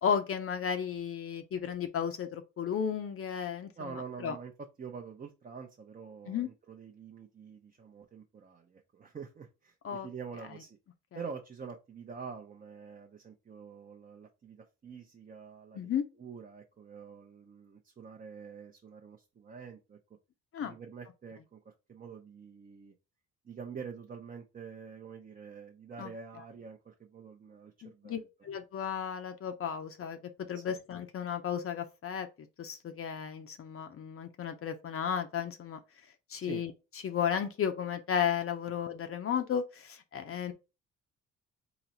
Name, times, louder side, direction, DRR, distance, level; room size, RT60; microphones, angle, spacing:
voice 1, 0.0-4.4 6.3-6.5 9.8-10.1 15.7-16.1 20.5-20.7 26.0-26.1 27.8-30.2 30.5-32.3 32.6-35.8 36.3-36.7 37.0-40.5, left 8 dB, 45° left, 0.6 m, -34 dB
voice 2, 3.8-10.8 11.1-15.9 16.2-20.0 20.6-22.9 23.4-28.3 30.5-30.8 36.5-36.6, right 6 dB, 30° right, 0.6 m, -46 dB
4.0 x 2.0 x 4.3 m
cardioid pair, 90°, 30 cm